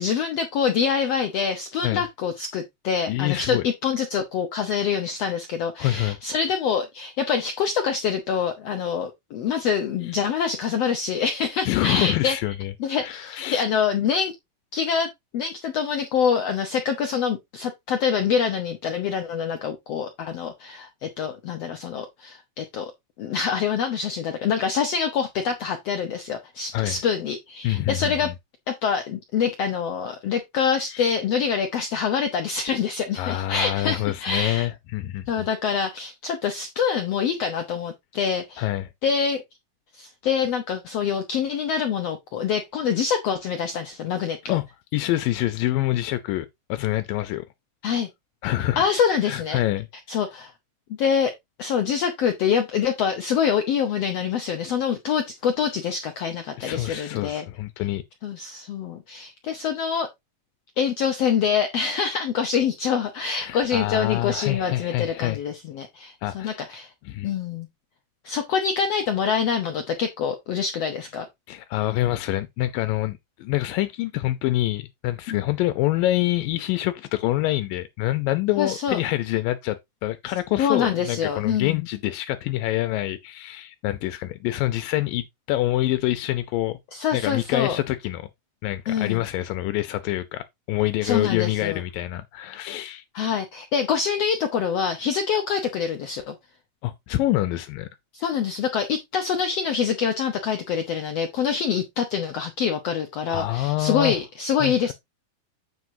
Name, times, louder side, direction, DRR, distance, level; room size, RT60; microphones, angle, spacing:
voice 1, 0.0-12.4 12.8-14.3 14.7-22.9 23.2-28.3 28.7-34.7 35.3-38.7 39.0-39.4 39.9-44.6 47.8-48.1 48.8-49.6 50.1-50.5 51.0-51.3 51.6-57.5 58.2-60.1 60.8-66.9 67.2-67.7 68.2-71.3 75.3-75.4 78.6-79.0 80.6-81.9 86.9-87.8 88.9-89.2 91.0-91.8 93.1-96.3 98.1-104.9, left 7 dB, 65° left, 1.7 m, -25 dB
voice 2, 3.1-3.7 5.8-6.2 11.7-13.6 26.7-27.0 27.6-28.3 30.9-31.2 33.2-35.5 38.6-38.9 44.5-44.6 44.9-47.4 48.4-48.9 49.2-49.9 56.6-58.0 63.4-65.4 66.2-66.7 67.0-67.3 71.5-86.8 87.1-88.3 88.6-93.0 96.8-97.9 103.3-104.2 104.6-104.9, left 15 dB, 85° left, 2.5 m, -26 dB
9.5 x 7.9 x 2.7 m
omnidirectional pair, 3.9 m